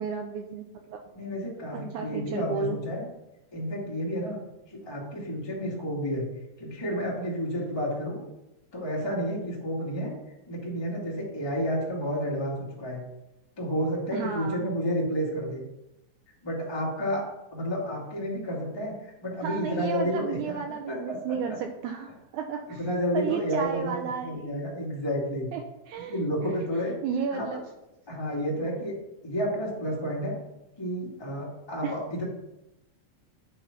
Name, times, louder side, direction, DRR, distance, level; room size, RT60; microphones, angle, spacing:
voice 1, 0.0-1.0 1.7-2.8 14.1-14.7 19.4-22.9 23.1-24.7 25.5-25.6 25.9-26.2 27.0-27.7 31.8-31.9, right 6 dB, 90° right, 4 dB, 1.7 m, -33 dB
voice 2, 1.1-3.0 3.5-4.4 4.7-6.3 6.6-8.2 8.7-10.1 10.5-13.0 13.6-15.6 16.4-17.2 17.5-20.6 20.9-21.2 22.8-23.9 24.2-25.5 26.1-27.0 27.3-27.5 28.1-28.9 29.2-30.3 30.8-32.2, equal, 15° left, -4 dB, 0.9 m, -30 dB
9.9 x 3.6 x 5.8 m, 0.92 s
omnidirectional pair, 4.1 m